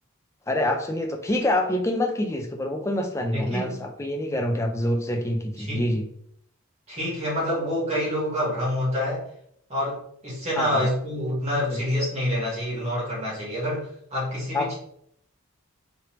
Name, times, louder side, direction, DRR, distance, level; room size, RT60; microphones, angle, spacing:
voice 1, 0.5-6.1 10.6-10.9 11.7-11.8 14.5-14.7, left 1 dB, 15° left, 4 dB, 0.3 m, -26 dB
voice 2, 3.3-3.8 5.6-5.9 6.9-9.2 9.7-14.7, left 1 dB, 30° right, -6 dB, 1.5 m, -27 dB
3.7 x 3.3 x 3.0 m, 0.69 s
head